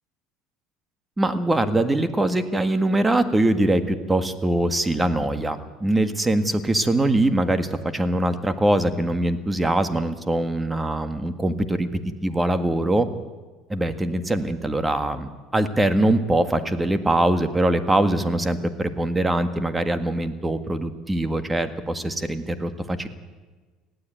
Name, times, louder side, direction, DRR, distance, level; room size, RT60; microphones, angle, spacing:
voice 1, 1.2-13.1 13.7-23.1, right 1 dB, 15° right, 9 dB, 1.7 m, -23 dB
20.0 x 15.0 x 9.1 m, 1.3 s
supercardioid pair, 110°, 0 cm